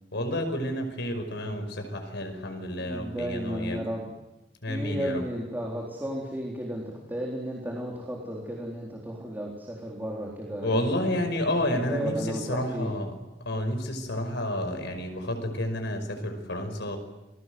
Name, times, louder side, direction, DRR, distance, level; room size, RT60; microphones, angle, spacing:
voice 1, 0.1-3.8 4.6-5.2 10.6-13.1 13.4-17.0, left 1 dB, 65° left, 6 dB, 5.5 m, -30 dB
voice 2, 2.8-4.1 4.7-11.2 11.7-12.9, right 1 dB, 10° right, -2 dB, 4.1 m, -34 dB
28.5 x 21.5 x 7.9 m, 1.0 s
head